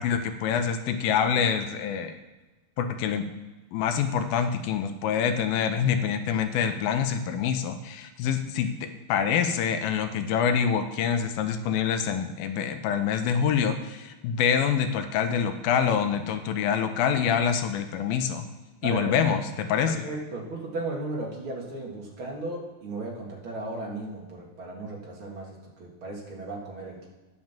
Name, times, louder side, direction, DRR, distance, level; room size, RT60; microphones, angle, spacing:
voice 1, 0.0-2.1 2.8-3.3 3.7-18.5 18.8-20.1, left 7 dB, 80° left, 7 dB, 2.5 m, -26 dB
voice 2, 18.8-19.1 19.8-27.1, right 2 dB, 40° right, -2 dB, 2.4 m, -35 dB
9.4 x 6.4 x 7.3 m, 1.2 s
omnidirectional pair, 4.3 m